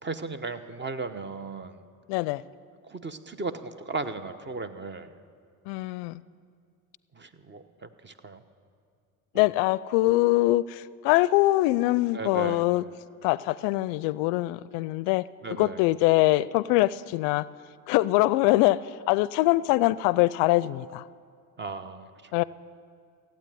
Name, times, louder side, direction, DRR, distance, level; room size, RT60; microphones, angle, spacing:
voice 1, 0.0-1.8 2.8-5.1 7.1-8.4 9.3-9.4 12.1-12.6 15.4-15.8 21.6-22.3, right 4 dB, 25° right, 10 dB, 1.0 m, -36 dB
voice 2, 2.1-2.4 5.7-6.2 9.3-12.8 13.2-15.2 15.6-17.5 17.9-21.0 22.3-22.4, left 18 dB, 65° left, 19 dB, 0.5 m, -23 dB
15.0 x 8.8 x 9.3 m, 2.2 s
hypercardioid pair, 70°, 46 cm